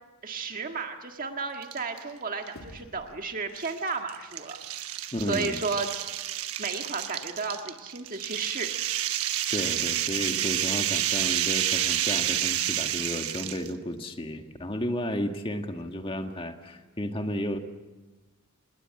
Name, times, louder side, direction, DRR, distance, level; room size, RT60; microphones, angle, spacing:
voice 1, 0.2-4.6 5.3-5.9 6.6-8.7, right 4 dB, 40° right, 4 dB, 1.7 m, -33 dB
sound 1, 1.6-2.0 2.5-2.6 3.6-13.7, right 11 dB, 85° right, 1.2 m, -29 dB
sound 2, 2.6-5.2, left 1 dB, 75° left, 3.2 m, -52 dB
voice 2, 5.1-5.6 9.5-17.6, equal, 25° left, 5 dB, 1.7 m, -33 dB
26.5 x 20.5 x 7.7 m, 1.2 s
head